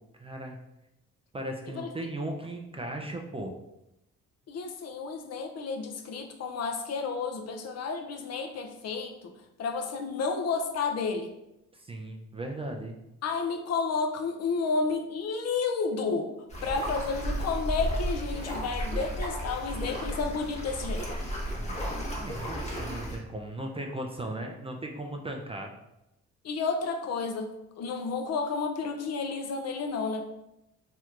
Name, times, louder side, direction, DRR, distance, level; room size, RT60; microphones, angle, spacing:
voice 1, 0.2-0.6 1.3-3.5 11.7-12.9 21.5-21.9 22.2-25.7, right 1 dB, 20° right, 2 dB, 0.3 m, -37 dB
voice 2, 4.5-9.2 9.6-11.3 13.2-16.3 16.6-21.0 26.4-27.5 27.8-30.2, left 4 dB, 55° left, 4 dB, 0.5 m, -31 dB
sound 1, 16.5-23.2, equal, 20° left, 1.0 m, -33 dB
3.2 x 2.9 x 2.4 m, 0.88 s
cardioid pair, 90°, 30 cm